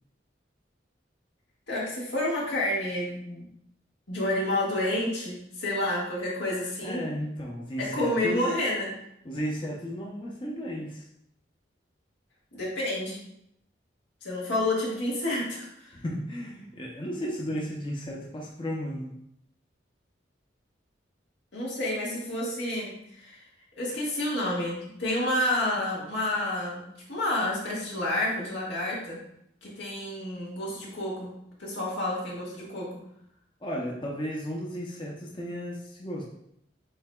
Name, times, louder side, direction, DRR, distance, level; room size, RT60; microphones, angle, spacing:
voice 1, 1.7-3.5 4.1-7.1 7.8-8.9 12.5-13.2 14.2-15.9 21.5-23.4 23.8-29.2 29.6-31.3 31.6-32.9, left 1 dB, 85° left, -5 dB, 1.6 m, -29 dB
voice 2, 6.8-8.5 9.2-11.0 15.9-19.1 33.6-36.2, equal, 25° left, -3 dB, 0.6 m, -34 dB
7.7 x 2.8 x 2.3 m, 0.75 s
head